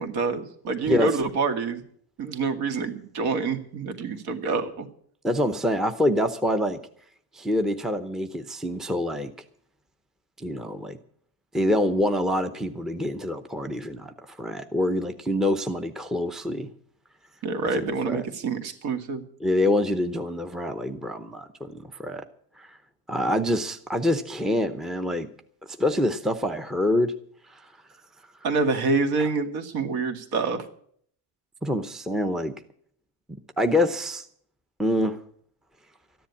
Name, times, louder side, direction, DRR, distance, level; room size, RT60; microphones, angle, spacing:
voice 1, 0.0-1.8 2.2-4.9 17.4-19.2 28.4-30.7, right 4 dB, 60° right, 7 dB, 2.2 m, -27 dB
voice 2, 5.2-6.8 7.3-9.3 10.4-11.0 11.5-16.7 17.7-18.2 19.4-22.2 22.6-22.8 23.1-25.3 25.8-27.1 27.5-27.7 29.2-29.3 31.6-32.5 33.6-34.3 34.8-35.2, left 1 dB, ahead, 8 dB, 0.7 m, -26 dB
13.5 x 10.5 x 8.4 m, 0.62 s
cardioid pair, 145°, 42 cm